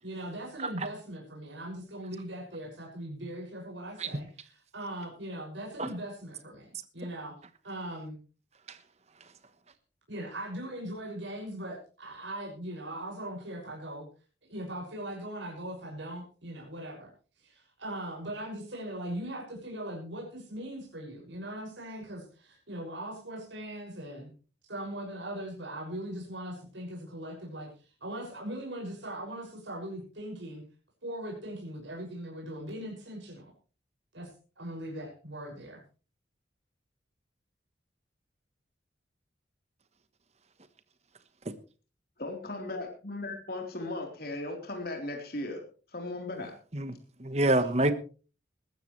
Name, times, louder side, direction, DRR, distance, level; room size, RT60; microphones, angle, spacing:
voice 1, 0.0-7.3 7.6-8.2 10.1-14.1 14.5-17.1 17.4-24.3 24.7-27.7 28.0-30.6 31.0-33.5 34.1-35.8, right 1 dB, 75° right, -2 dB, 6.4 m, -40 dB
voice 2, 42.2-45.6 45.9-46.5, left 2 dB, 50° left, 2 dB, 3.8 m, -37 dB
voice 3, 46.7-47.9, right 1 dB, 35° right, 11 dB, 1.2 m, -27 dB
19.5 x 14.0 x 3.2 m, 0.37 s
head